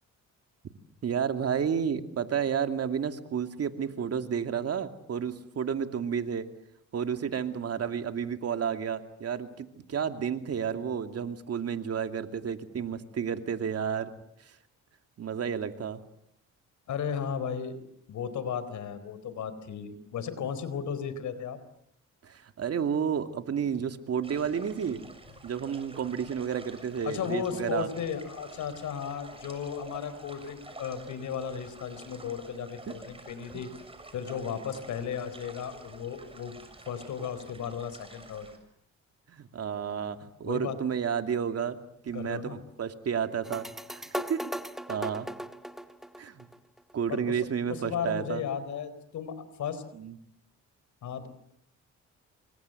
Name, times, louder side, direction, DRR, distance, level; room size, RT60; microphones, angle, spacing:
voice 1, 1.0-6.5 6.9-14.1 14.4-14.5 15.2-16.0 22.2-25.0 25.4-27.9 33.5-33.6 39.3-41.8 42.0-44.4 44.9-45.3 46.2-46.5 46.9-48.4 49.9-50.2, right 7 dB, 55° right, 8 dB, 2.6 m, -31 dB
voice 2, 16.9-17.8 18.1-21.6 27.1-33.7 34.1-36.6 36.9-38.5 40.4-40.8 42.1-42.6 47.1-47.3 47.8-49.8 51.0-51.3, left 7 dB, 70° left, 13 dB, 4.2 m, -35 dB
sound 1, 24.2-38.6, right 2 dB, 20° right, 6.9 m, -49 dB
sound 2, 43.4-46.9, equal, ahead, 1.6 m, -38 dB
28.0 x 25.5 x 7.9 m, 0.73 s
cardioid pair, 90°, 30 cm